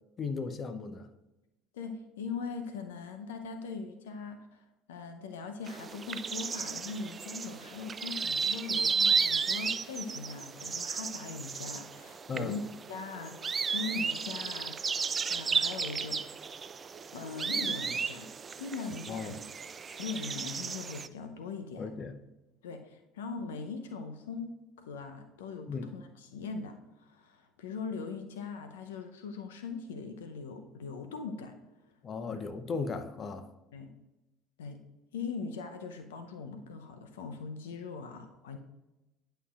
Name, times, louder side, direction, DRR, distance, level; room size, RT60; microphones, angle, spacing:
voice 1, 0.2-1.1 12.3-12.6 19.1-19.4 21.8-22.2 25.7-25.9 32.0-33.5, left 4 dB, 40° left, 0.7 m, -36 dB
voice 2, 1.7-12.6 12.9-16.2 17.1-18.3 18.6-19.4 20.0-21.9 22.6-31.6 31.8-31.9 33.7-33.9 34.6-34.8 35.1-38.6, left 4 dB, 80° left, 0.6 m, -41 dB
sound 1, 5.7-21.1, right 5 dB, 30° right, 0.4 m, -34 dB
11.0 x 5.7 x 2.4 m
hypercardioid pair, 65°, 0 cm